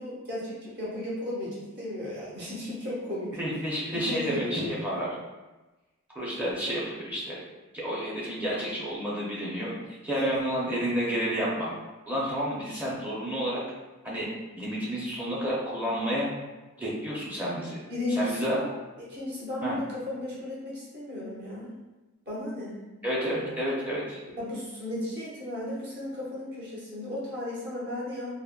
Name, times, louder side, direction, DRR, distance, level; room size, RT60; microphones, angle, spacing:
voice 1, 0.0-3.4 3.9-4.7 9.5-9.6 10.1-10.4 17.9-18.7 19.0-21.7 22.3-22.8 24.4-28.3, left 1 dB, 50° right, -7 dB, 0.9 m, -34 dB
voice 2, 3.4-5.1 6.1-7.4 7.7-9.8 10.0-11.7 12.1-13.6 14.0-14.2 14.6-16.3 16.8-17.8 18.1-18.6 19.6-19.8 23.0-24.2, equal, 5° right, -7 dB, 0.5 m, -30 dB
3.5 x 2.0 x 2.3 m, 1.1 s
head